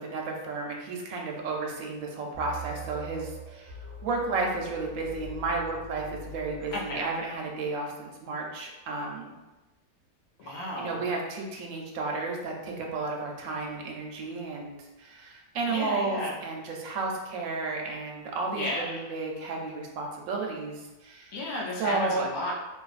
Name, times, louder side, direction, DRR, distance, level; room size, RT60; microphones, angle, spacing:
voice 1, 0.0-9.4 10.8-21.3 21.8-22.3, right 3 dB, 70° right, 0 dB, 0.9 m, -33 dB
sound 1, 2.3-7.3, right 1 dB, 40° right, 0.5 m, -43 dB
voice 2, 6.7-7.0 10.4-11.0 15.7-16.3 18.5-19.1 21.3-22.5, left 1 dB, 75° left, -3 dB, 1.1 m, -33 dB
2.7 x 2.5 x 2.4 m, 1.1 s
omnidirectional pair, 1.6 m